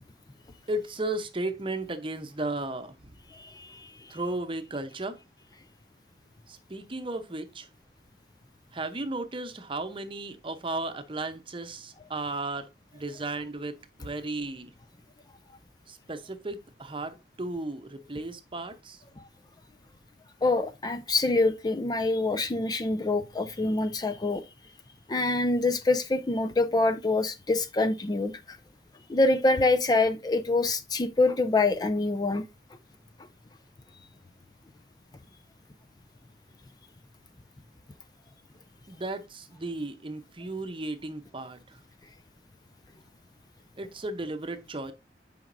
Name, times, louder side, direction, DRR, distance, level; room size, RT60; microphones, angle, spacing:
voice 1, 0.7-3.1 4.1-5.2 6.5-7.7 8.7-14.7 15.9-19.0 38.9-41.8 43.8-44.9, right 2 dB, 30° right, 0.8 m, -35 dB
voice 2, 3.3-3.9 20.4-24.4 25.1-28.6 29.1-32.4, left 2 dB, 25° left, 0.4 m, -25 dB
9.1 x 5.1 x 2.6 m
head